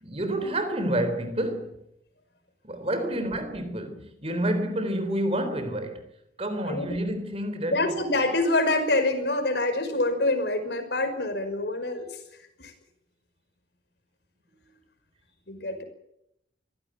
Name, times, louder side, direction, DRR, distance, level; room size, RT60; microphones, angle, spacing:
voice 1, 0.0-1.8 2.6-6.1 6.4-8.0, right 1 dB, 35° right, 3.8 m, -29 dB
voice 2, 7.7-12.1 12.6-12.7 15.5-15.8, left 2 dB, 65° left, 5.5 m, -26 dB
24.0 x 17.0 x 9.3 m
head